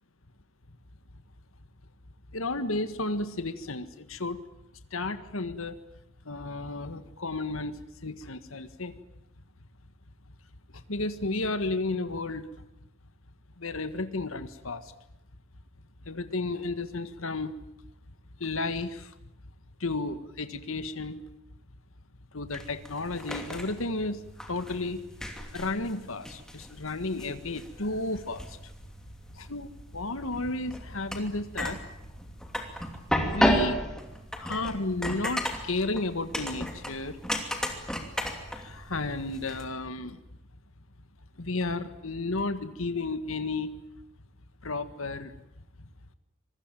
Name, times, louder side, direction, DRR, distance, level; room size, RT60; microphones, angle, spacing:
voice 1, 2.3-4.4 4.9-5.8 6.2-8.9 10.9-12.5 13.6-14.8 16.1-17.5 18.4-19.1 19.8-21.2 22.3-24.2 24.5-25.0 25.5-28.6 29.3-31.8 33.2-33.8 34.4-37.2 38.5-40.2 41.4-43.7 44.6-45.3, left 2 dB, 85° left, 11 dB, 1.7 m, -32 dB
sound 1, 22.5-39.6, equal, 5° left, 2.7 m, -34 dB
26.0 x 21.0 x 9.2 m, 0.84 s
head